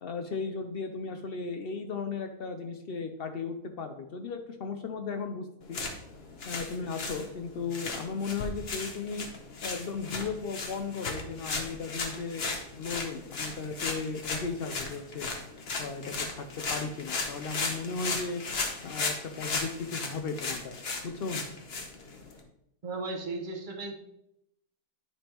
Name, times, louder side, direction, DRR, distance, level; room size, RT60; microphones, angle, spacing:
voice 1, 0.0-5.8 6.4-9.3 9.6-12.4 12.8-15.3 15.8-18.4 18.8-21.5, left 4 dB, 80° left, 6 dB, 0.5 m, -36 dB
sound 1, 5.6-22.4, left 3 dB, 45° left, 1.0 m, -36 dB
voice 2, 22.8-23.9, right 3 dB, 35° right, 2 dB, 1.1 m, -35 dB
9.8 x 5.2 x 2.9 m, 0.81 s
omnidirectional pair, 1.7 m